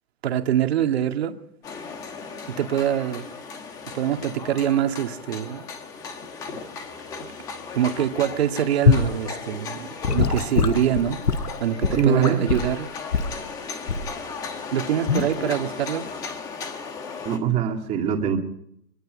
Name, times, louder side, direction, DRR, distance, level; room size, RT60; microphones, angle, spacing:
voice 1, 0.2-1.4 2.6-3.3 3.9-5.7 6.5-6.6 7.7-11.2 11.6-12.9 14.7-16.1, right 10 dB, 40° right, 2.1 m, -24 dB
sound 1, 1.6-17.4, left 5 dB, 10° left, 1.1 m, -36 dB
Gurgling / Sink (filling or washing) / Liquid, 8.9-9.1 10.0-12.7 13.1-13.4 13.9-14.2 15.1-15.3, left 5 dB, 85° left, 4.4 m, -22 dB
voice 2, 11.9-12.4 17.2-18.4, right 7 dB, 15° right, 2.2 m, -22 dB
23.5 x 22.0 x 5.2 m
hypercardioid pair, 165°, 47 cm